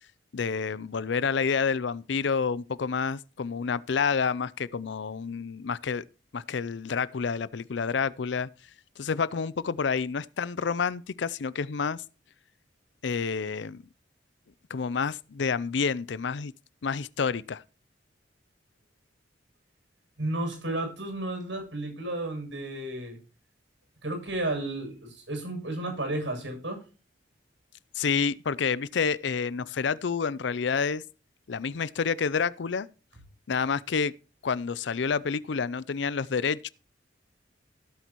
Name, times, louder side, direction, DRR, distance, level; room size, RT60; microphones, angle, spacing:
voice 1, 0.3-6.0 6.3-8.5 9.0-12.0 13.0-13.8 14.7-16.5 16.8-17.6 27.9-31.0 31.5-32.9 33.5-34.1 34.4-36.7, left 5 dB, 70° left, 0.5 m, -29 dB
voice 2, 20.2-23.2 24.0-26.8, right 1 dB, 80° right, 7.3 m, -32 dB
17.0 x 8.1 x 3.0 m
head